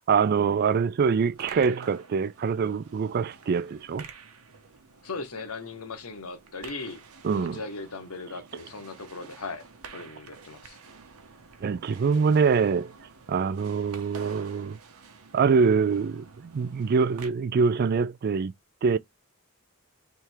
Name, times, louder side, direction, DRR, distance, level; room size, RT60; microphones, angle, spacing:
voice 1, 0.1-4.1 7.2-7.6 11.6-12.9 13.3-14.8 15.3-18.5 18.8-19.0, right 5 dB, 45° right, 0.3 m, -24 dB
sound 1, 1.1-17.3, right 5 dB, 85° right, 0.9 m, -49 dB
voice 2, 5.0-10.8, left 3 dB, 85° left, 1.2 m, -38 dB
3.6 x 3.2 x 4.5 m
head